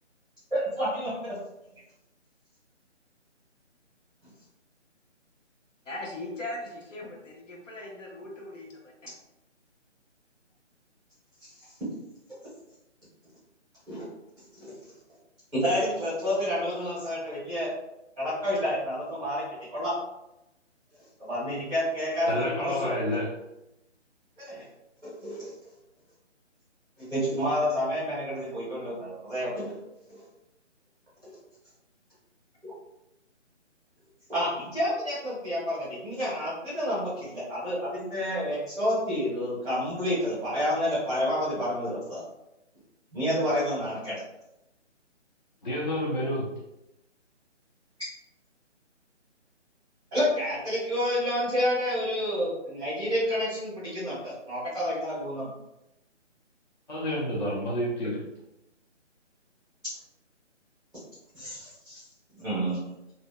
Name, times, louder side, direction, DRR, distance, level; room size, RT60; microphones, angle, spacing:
voice 1, 0.5-1.3 13.9-14.1 14.7-14.8 15.5-17.7 18.2-19.4 19.7-19.9 21.2-23.0 24.4-24.6 25.0-25.5 27.0-29.7 30.1-30.2 31.2-31.3 32.6-32.7 34.3-42.2 43.1-44.2 50.1-55.5 61.3-62.0 62.4-62.8, equal, 5° left, -13 dB, 0.7 m, -29 dB
voice 2, 5.8-9.1, left 2 dB, 90° left, -2 dB, 0.9 m, -39 dB
voice 3, 22.3-23.3 45.6-46.5 56.9-58.2, left 1 dB, 40° left, -6 dB, 0.5 m, -29 dB
2.6 x 2.3 x 2.2 m, 0.90 s
hypercardioid pair, 165°, 37 cm